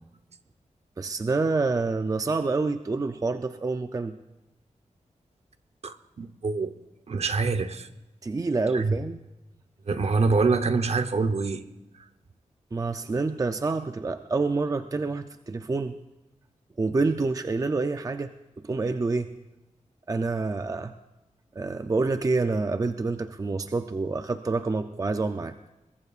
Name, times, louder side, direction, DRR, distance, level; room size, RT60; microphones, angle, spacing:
voice 1, 1.0-4.2 8.2-9.2 12.7-16.0 16.8-18.3 18.6-19.3 20.1-20.9 21.6-25.5, right 3 dB, 25° right, 8 dB, 0.5 m, -27 dB
voice 2, 5.8-6.7 7.1-7.9 8.7-9.0 9.9-11.6, right 4 dB, 55° right, 9 dB, 0.9 m, -25 dB
22.5 x 21.5 x 2.5 m, 1.0 s
wide cardioid pair, 140°, 13 cm